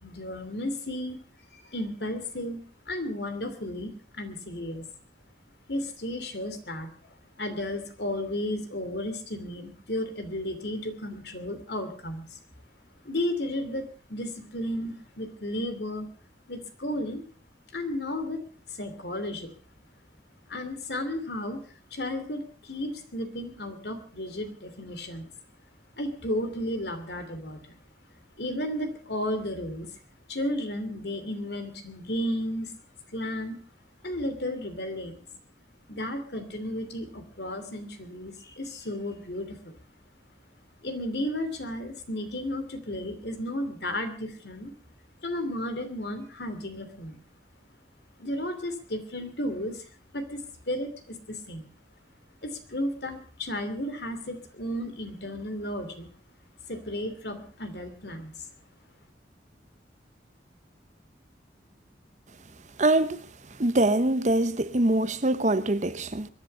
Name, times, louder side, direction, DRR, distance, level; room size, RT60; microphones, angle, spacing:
voice 1, 0.0-1.2 1.5-4.8 5.7-6.9 7.4-12.4 13.0-16.1 16.5-17.2 17.7-18.4 18.7-19.5 20.5-21.6 21.9-25.3 26.0-27.8 28.4-29.9 30.3-32.7 33.1-33.6 34.0-35.2 35.9-39.7 40.8-44.7 45.2-47.2 48.2-49.8 50.1-51.7 52.4-56.1 56.7-58.5, left 1 dB, 65° left, 2.9 m, -33 dB
voice 2, 62.8-63.2 63.6-66.3, right 2 dB, 40° right, 0.9 m, -24 dB
23.0 x 10.5 x 5.4 m
head